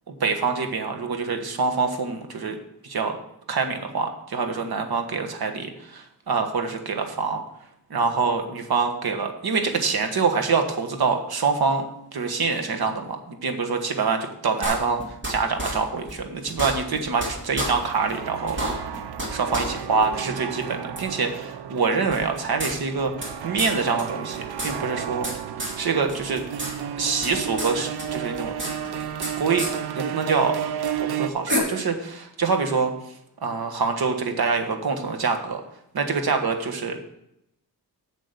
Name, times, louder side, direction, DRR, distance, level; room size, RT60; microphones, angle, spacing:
voice 1, 0.1-2.6 2.8-3.2 3.5-7.4 7.9-11.8 12.1-19.0 19.3-23.1 23.4-25.3 25.8-26.4 27.0-28.5 29.4-29.6 30.0-30.5 31.0-32.9 33.4-35.6 35.9-37.0, right 5 dB, 70° right, 5 dB, 1.5 m, -25 dB
sound 1, 14.6-15.3 15.6-15.7 16.1-16.2 16.5-17.3 17.6-17.7 18.1-18.2 18.5-19.3 19.5-19.7 20.0-20.1 21.0-21.1 22.1-23.3 23.6-23.7 24.0-24.1 24.3-25.3 25.6-25.8 26.1-26.7 27.0-27.7 28.0-29.3 29.6-29.7 30.9-31.0 31.5-31.6, right 1 dB, 30° right, 2.4 m, -29 dB
sound 2, 17.4-31.3, right 9 dB, 90° right, 0.7 m, -33 dB
7.9 x 7.5 x 6.9 m, 0.80 s
wide cardioid pair, 165°, 38 cm